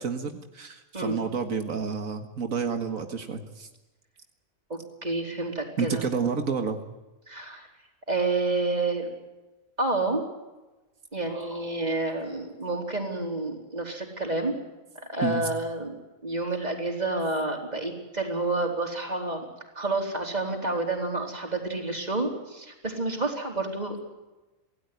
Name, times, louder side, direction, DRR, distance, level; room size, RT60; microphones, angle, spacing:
voice 1, 0.0-3.7 5.8-6.8 15.2-15.5, right 5 dB, 90° right, 6 dB, 2.2 m, -29 dB
voice 2, 4.7-6.0 7.3-7.7 8.1-9.1 9.8-10.2 11.1-14.5 15.0-16.0 16.2-19.5 19.7-24.1, right 2 dB, 30° right, 3 dB, 4.3 m, -29 dB
26.5 x 17.5 x 9.5 m, 1.1 s
omnidirectional pair, 1.4 m